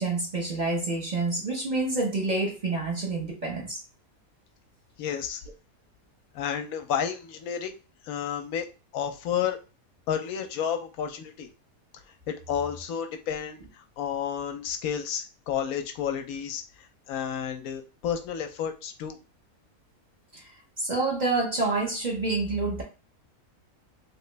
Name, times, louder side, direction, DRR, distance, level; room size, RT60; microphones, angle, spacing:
voice 1, 0.0-3.8 20.3-22.8, right 3 dB, 35° right, 1.0 m, -28 dB
voice 2, 5.0-5.4 6.3-7.7 8.0-8.7 8.9-9.6 10.1-11.5 12.3-16.6 17.1-19.2, left 8 dB, 80° left, 1.0 m, -31 dB
3.1 x 2.9 x 3.2 m
omnidirectional pair, 1.5 m